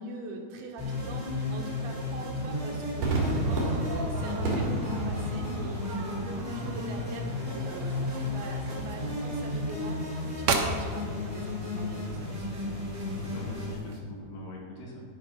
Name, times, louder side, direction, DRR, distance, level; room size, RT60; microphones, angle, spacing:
voice 1, 0.0-12.7, right 2 dB, 65° right, 1 dB, 3.2 m, -42 dB
sound 1, 0.8-13.7, left 2 dB, 15° right, 3.6 m, -34 dB
Crowd / Fireworks, 3.0-9.6, right 2 dB, 50° right, 3.5 m, -33 dB
sound 2, 6.4-14.0, right 4 dB, 85° right, 1.5 m, -37 dB
voice 2, 13.2-15.1, left 2 dB, 70° left, -3 dB, 4.5 m, -42 dB
10.5 x 10.5 x 6.0 m, 2.2 s
omnidirectional pair, 5.0 m